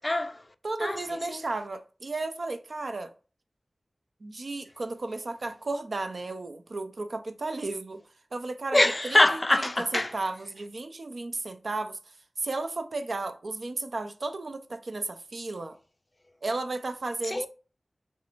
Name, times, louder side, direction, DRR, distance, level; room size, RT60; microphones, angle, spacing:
voice 1, 0.0-0.5 0.8-1.5 8.7-10.2 17.2-17.5, left 1 dB, 35° left, 0.3 m, -24 dB
voice 2, 0.6-3.1 4.2-8.0 8.3-8.8 9.6-9.7 9.9-12.0 12.4-15.8 16.4-17.5, right 2 dB, 70° right, 0.4 m, -34 dB
3.1 x 2.6 x 2.9 m
cardioid pair, 40°, 0 cm